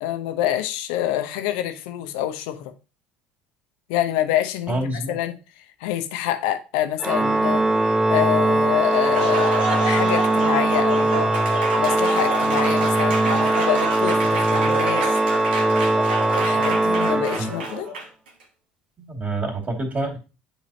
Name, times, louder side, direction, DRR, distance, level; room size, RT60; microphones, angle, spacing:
voice 1, 0.0-2.7 3.9-5.3 5.8-7.6 8.1-11.3 11.7-15.2 16.4-17.9, left 12 dB, 60° left, 0.8 m, -26 dB
voice 2, 4.7-5.2 17.4-17.5 19.0-20.2, right 2 dB, 30° right, 2.5 m, -27 dB
Organ, 7.0-17.9, right 2 dB, 10° right, 0.7 m, -21 dB
Applause, 8.9-18.3, right 2 dB, 75° right, 1.2 m, -28 dB
10.0 x 4.2 x 2.8 m
figure-of-eight pair, 65°, 5 cm